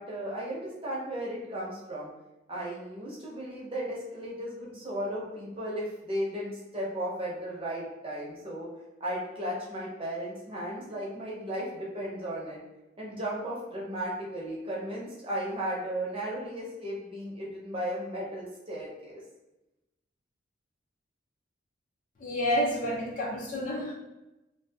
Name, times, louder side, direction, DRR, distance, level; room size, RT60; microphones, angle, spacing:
voice 1, 0.0-2.1 2.5-8.7 9.0-12.6 13.0-19.2, right 1 dB, 30° right, -5 dB, 0.6 m, -35 dB
voice 2, 22.2-23.9, equal, 40° left, -2 dB, 0.4 m, -29 dB
2.5 x 2.2 x 2.2 m, 0.97 s
head